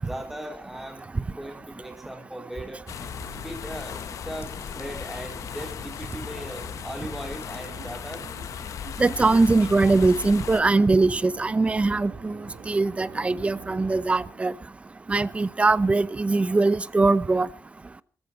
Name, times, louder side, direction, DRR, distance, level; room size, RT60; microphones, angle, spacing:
voice 1, 0.0-2.8 3.4-4.0 4.3-8.2, right 1 dB, 5° right, 4.0 m, -38 dB
sound 1, 2.8-8.2, left 5 dB, 45° left, 2.7 m, -45 dB
sound 2, 2.9-10.6, left 9 dB, 75° left, 0.8 m, -37 dB
sound 3, 3.1-14.6, right 6 dB, 80° right, 4.1 m, -47 dB
voice 2, 9.0-12.3 12.7-14.5 15.1-17.5, right 3 dB, 20° right, 0.7 m, -21 dB
20.0 x 14.5 x 4.2 m
wide cardioid pair, 135°, 6 cm